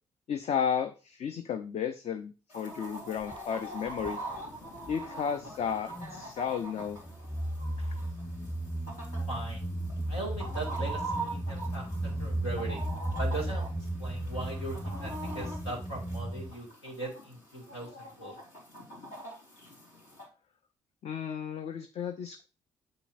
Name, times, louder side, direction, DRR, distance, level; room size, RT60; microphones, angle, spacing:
voice 1, 0.3-4.2 4.9-7.0 21.0-22.5, left 7 dB, 50° left, 9 dB, 0.6 m, -33 dB
Chicken rooster, 2.5-20.2, right 2 dB, 70° left, 3.5 m, -43 dB
sound 1, 3.2-3.4 3.9-5.0 5.4-6.3 6.8-16.5, right 1 dB, 10° left, 0.8 m, -35 dB
voice 2, 9.3-9.6 10.1-12.8 13.2-18.3, right 2 dB, 85° left, -1 dB, 1.9 m, -39 dB
7.9 x 6.9 x 2.5 m, 0.33 s
figure-of-eight pair, 40°, 14 cm